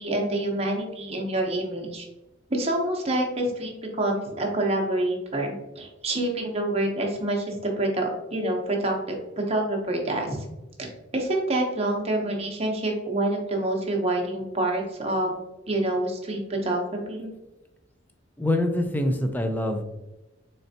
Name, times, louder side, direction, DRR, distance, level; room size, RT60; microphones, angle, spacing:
voice 1, 0.0-2.1 2.5-10.4 10.8-10.9 11.1-15.3 15.7-17.3, right 1 dB, 35° right, 1 dB, 0.8 m, -27 dB
voice 2, 18.4-19.8, left 1 dB, 10° left, 6 dB, 0.4 m, -25 dB
4.0 x 3.2 x 2.7 m, 0.99 s
head